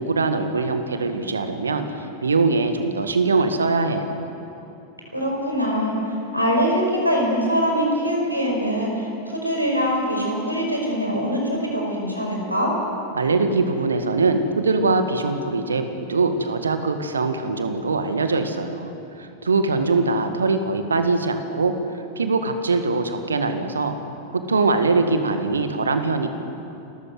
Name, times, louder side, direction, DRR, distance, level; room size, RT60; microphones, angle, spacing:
voice 1, 0.0-4.3 13.1-21.7 22.2-23.9 24.3-26.3, right 3 dB, 75° right, 8 dB, 1.8 m, -22 dB
voice 2, 5.1-5.9 6.3-12.7, equal, 90° right, -1 dB, 5.3 m, -23 dB
29.0 x 14.0 x 7.8 m, 2.9 s
figure-of-eight pair, 90°, 0 cm